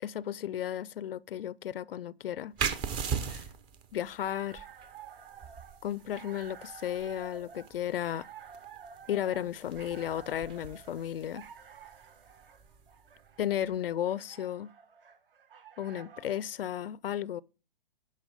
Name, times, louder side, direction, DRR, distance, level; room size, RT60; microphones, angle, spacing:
voice 1, 0.0-2.5 3.3-3.4 3.9-4.7 5.8-8.3 9.1-11.4 13.4-14.7 15.8-17.4, left 11 dB, 75° left, 0.4 m, -34 dB
sound 1, 2.6-13.9, right 6 dB, 15° right, 0.5 m, -40 dB
sound 2, 4.0-16.5, right 7 dB, 65° right, 1.5 m, -51 dB
10.5 x 5.7 x 5.0 m
hypercardioid pair, 135°, 29 cm